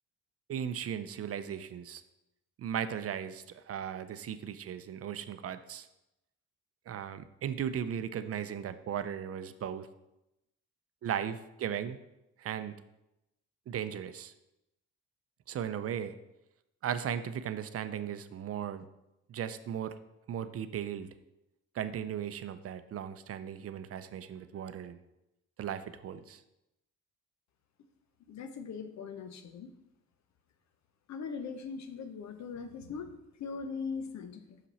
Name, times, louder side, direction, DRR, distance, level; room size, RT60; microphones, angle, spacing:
voice 1, 0.5-2.0 2.6-5.9 6.9-9.9 11.0-12.0 12.4-12.7 13.7-14.3 15.5-16.2 16.8-18.8 19.3-19.9 20.3-21.1 21.7-25.0 25.6-26.4, right 9 dB, 50° right, 11 dB, 0.5 m, -37 dB
voice 2, 28.3-29.7 31.1-34.6, left 5 dB, 65° left, 8 dB, 0.8 m, -40 dB
6.0 x 5.7 x 4.2 m, 0.89 s
cardioid pair, 90°, 30 cm